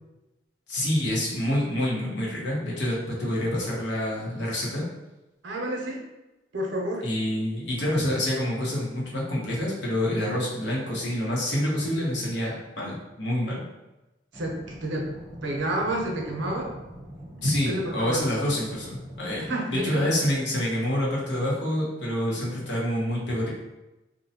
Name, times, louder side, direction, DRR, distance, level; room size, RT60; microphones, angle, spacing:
voice 1, 0.7-4.8 7.0-13.7 17.4-23.5, left 1 dB, 80° left, -4 dB, 0.9 m, -27 dB
voice 2, 5.4-6.0 6.5-7.1 14.3-15.1 15.4-16.7 17.7-18.3 19.4-20.0, right 1 dB, 85° right, -1 dB, 0.7 m, -29 dB
sound 1, 14.3-19.5, equal, 20° right, 0.4 m, -43 dB
2.7 x 2.2 x 2.8 m, 1.0 s
head